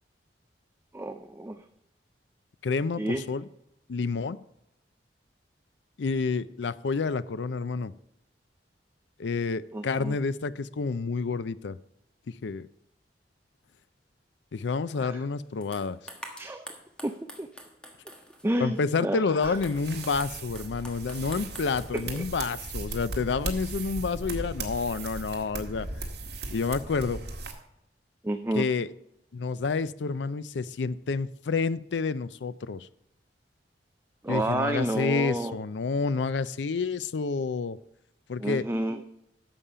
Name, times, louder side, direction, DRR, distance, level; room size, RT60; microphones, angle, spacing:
voice 1, 0.9-1.6 3.0-3.2 9.7-10.2 15.0-15.2 16.4-16.7 17.0-17.1 17.4-17.5 18.4-19.6 21.9-22.2 28.2-28.7 34.2-35.6 38.4-39.0, right 1 dB, 15° right, 7 dB, 0.4 m, -30 dB
voice 2, 2.6-3.4 3.9-4.4 6.0-7.9 9.2-11.8 12.4-12.7 14.5-16.0 18.6-25.9 26.5-27.2 28.5-28.9 29.3-32.9 34.3-37.8 38.3-38.7, left 4 dB, 75° left, 16 dB, 0.5 m, -29 dB
sound 1, 14.9-15.0 15.6-18.5 19.3-22.3, equal, 5° left, 1.4 m, -46 dB
sound 2, 19.4-27.5, right 2 dB, 65° right, 1.9 m, -37 dB
11.0 x 7.1 x 4.9 m, 0.83 s
head